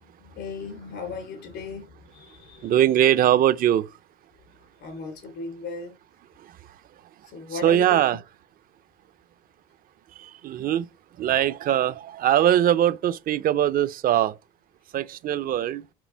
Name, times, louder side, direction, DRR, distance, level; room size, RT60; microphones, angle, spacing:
voice 1, 0.2-2.8 4.8-5.9 7.3-8.0, left 4 dB, 80° left, 3.0 m, -36 dB
voice 2, 2.6-3.9 6.4-6.6 7.5-8.2 10.2-10.9 11.2-14.4 14.9-15.9, right 11 dB, 60° right, 0.5 m, -21 dB
6.2 x 5.8 x 4.5 m
cardioid pair, 110°, 17 cm